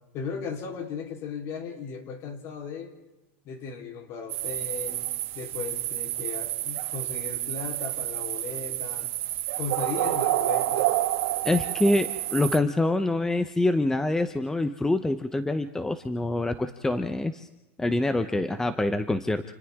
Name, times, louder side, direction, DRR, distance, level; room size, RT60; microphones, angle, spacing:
voice 1, 0.1-2.9 3.4-9.1 9.6-11.0, left 6 dB, 45° left, 3 dB, 3.9 m, -36 dB
sound 1, 4.3-12.6, right 15 dB, 70° right, 1.7 m, -29 dB
voice 2, 11.4-17.5 17.8-19.4, left 2 dB, 5° left, 10 dB, 0.8 m, -25 dB
29.0 x 28.5 x 3.7 m, 1.1 s
supercardioid pair, 135°, 7 cm